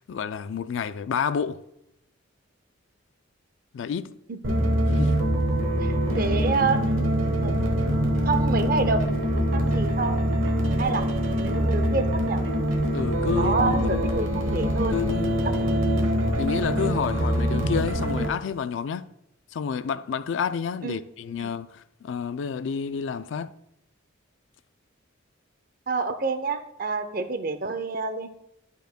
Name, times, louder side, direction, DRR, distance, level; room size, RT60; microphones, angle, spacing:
voice 1, 0.0-1.6 3.7-4.1 4.9-5.2 12.9-14.1 14.9-15.4 16.3-19.1 19.5-23.5, left 6 dB, 70° left, 0.3 m, -29 dB
voice 2, 4.3-4.7 5.8-6.8 7.4-7.5 8.3-9.0 9.3-10.2 10.8-11.1 11.4-12.4 13.4-15.0 20.8-21.0 21.4-21.5 25.9-28.3, right 4 dB, 45° right, 0.6 m, -28 dB
sound 1, 4.4-18.3, equal, 85° right, 1.2 m, -24 dB
11.5 x 5.2 x 2.2 m
head